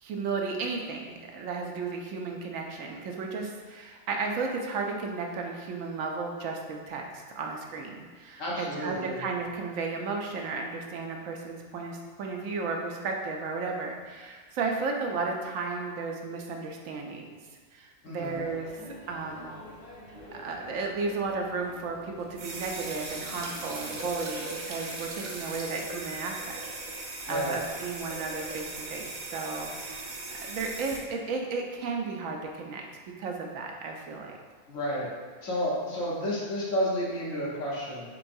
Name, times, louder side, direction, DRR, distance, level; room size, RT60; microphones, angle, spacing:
voice 1, 0.0-17.4 17.7-18.7 19.1-19.6 20.3-26.6 27.0-30.1 30.4-32.8 33.2-34.4, right 4 dB, 80° right, 1 dB, 1.0 m, -34 dB
voice 2, 8.4-9.2 18.0-18.4 27.3-27.6 34.7-35.1 35.4-38.0, equal, 75° left, -5 dB, 1.4 m, -31 dB
sound 1, 18.2-24.3, left 1 dB, 35° left, 0.8 m, -49 dB
sound 2, 22.3-31.0, right 2 dB, 50° right, 0.6 m, -38 dB
4.5 x 3.8 x 2.6 m, 1.5 s
omnidirectional pair, 1.4 m